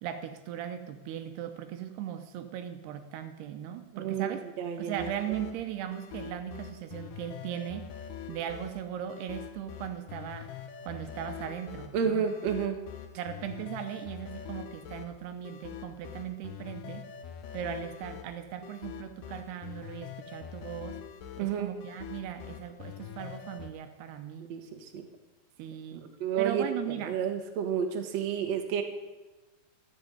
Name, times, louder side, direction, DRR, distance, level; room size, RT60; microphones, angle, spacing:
voice 1, 0.0-4.4 4.8-7.9 8.3-10.6 10.8-12.3 13.2-17.1 17.5-21.0 21.4-24.5 25.6-26.1 26.4-27.2, right 10 dB, 75° right, 8 dB, 2.7 m, -38 dB
voice 2, 3.9-4.3 4.6-5.1 11.9-12.8 21.4-21.7 24.5-25.0 25.9-26.7 27.0-28.8, right 8 dB, 60° right, 4 dB, 1.8 m, -30 dB
sound 1, 5.0-23.7, left 9 dB, 85° left, 1.8 m, -44 dB
13.5 x 7.6 x 9.4 m, 1.2 s
omnidirectional pair, 5.2 m